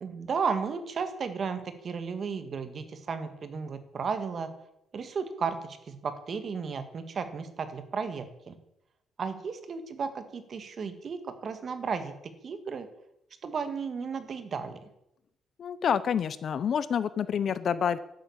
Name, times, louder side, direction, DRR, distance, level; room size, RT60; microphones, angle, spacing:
voice 1, 0.0-4.5 4.9-8.6 9.2-12.9 13.4-14.8, right 5 dB, 35° right, 9 dB, 1.8 m, -34 dB
voice 2, 15.6-18.0, left 7 dB, 40° left, 15 dB, 0.7 m, -28 dB
12.5 x 11.0 x 8.6 m, 0.82 s
cardioid pair, 175°, 0 cm